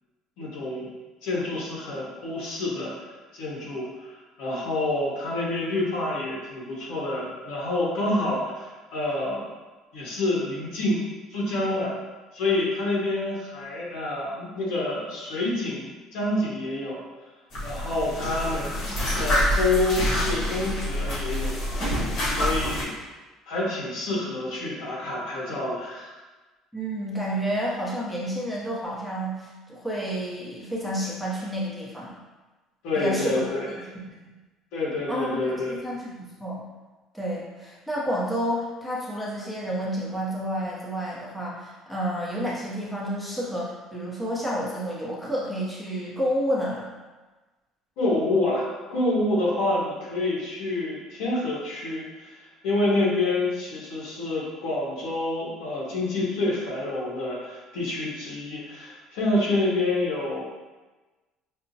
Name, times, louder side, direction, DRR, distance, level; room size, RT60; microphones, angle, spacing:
voice 1, 0.4-0.9 1.2-9.4 9.9-11.9 12.3-17.0 17.6-21.5 22.2-22.9 23.5-26.2 32.8-33.7 34.7-35.7 48.0-60.4, left 2 dB, 80° left, -4 dB, 1.1 m, -28 dB
sound 1, 17.5-22.8, equal, 50° left, 1.0 m, -26 dB
voice 2, 26.7-32.2 33.0-33.4 33.9-34.3 35.1-36.6 37.1-46.9, equal, 5° left, -6 dB, 0.6 m, -30 dB
5.5 x 2.0 x 2.7 m, 1.2 s
cardioid pair, 165°, 0 cm